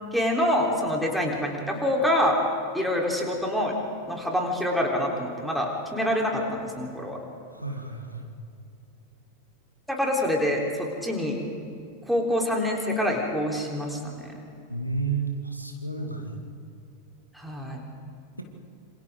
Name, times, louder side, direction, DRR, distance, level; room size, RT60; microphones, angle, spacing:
voice 1, 0.1-2.4 2.7-3.7 4.1-7.2 9.9-11.4 12.1-14.3 17.3-17.8, left 1 dB, ahead, -1 dB, 3.8 m, -26 dB
voice 2, 7.5-8.3 14.7-16.4, right 4 dB, 90° right, 3 dB, 2.3 m, -31 dB
27.0 x 27.0 x 3.8 m, 2.6 s
figure-of-eight pair, 90°, 0 cm